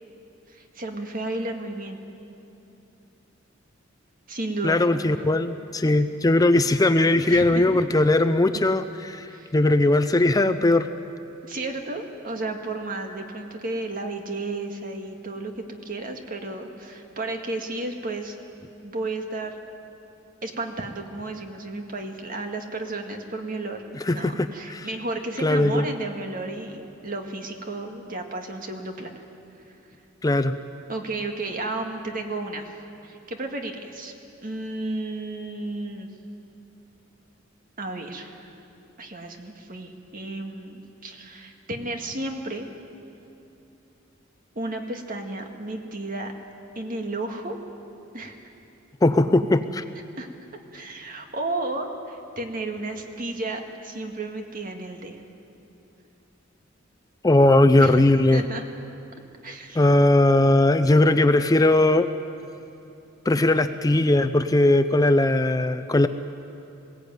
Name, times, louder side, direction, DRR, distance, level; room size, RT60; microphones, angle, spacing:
voice 1, 0.5-2.0 4.3-4.9 7.3-8.0 9.3-9.5 11.5-18.4 18.8-19.6 20.4-29.2 29.7-29.8 30.9-32.8 33.0-34.1 34.4-36.1 37.8-38.6 39.0-42.7 44.6-46.3 46.8-47.6 48.1-48.4 50.2-50.3 50.7-55.2 57.8-58.0 58.3-58.6 59.4-59.9, right 2 dB, 45° right, 4 dB, 1.9 m, -33 dB
voice 2, 4.6-9.3 9.5-10.9 24.1-24.9 25.4-25.8 30.2-30.5 49.0-49.8 57.2-58.4 59.8-62.1 63.3-66.1, left 2 dB, 20° left, 10 dB, 0.5 m, -19 dB
21.0 x 16.5 x 9.3 m, 2.8 s
head